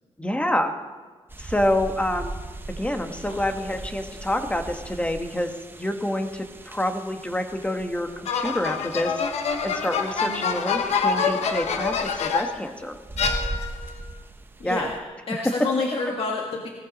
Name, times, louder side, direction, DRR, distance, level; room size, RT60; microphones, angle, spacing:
voice 1, 0.2-0.7 1.4-2.3 2.7-5.5 5.8-9.1 9.6-13.0 14.6-14.9, left 1 dB, 10° left, 6 dB, 1.4 m, -27 dB
sound 1, 1.3-15.0, right 2 dB, 20° right, 1.0 m, -39 dB
sound 2, 8.3-12.7 13.2-13.9, left 5 dB, 85° left, 1.2 m, -26 dB
voice 2, 14.6-16.7, left 3 dB, 60° left, 0 dB, 1.7 m, -29 dB
18.0 x 14.0 x 4.1 m, 1.4 s
cardioid pair, 105°, 11 cm